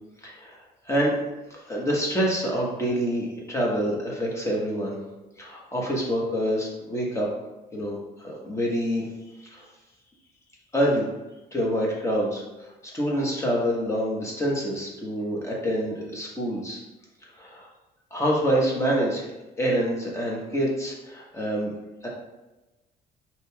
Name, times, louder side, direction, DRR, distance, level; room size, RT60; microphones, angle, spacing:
voice 1, 0.2-0.6 0.9-1.1 1.5-5.0 5.4-7.3 7.7-9.0 9.4-9.7 10.7-11.1 11.5-12.4 12.8-16.8 17.4-17.7 18.1-19.3 19.6-21.7 22.0-22.1, equal, 15° left, -3 dB, 1.1 m, -26 dB
5.1 x 2.9 x 2.3 m, 1.0 s
cardioid pair, 110°, 17 cm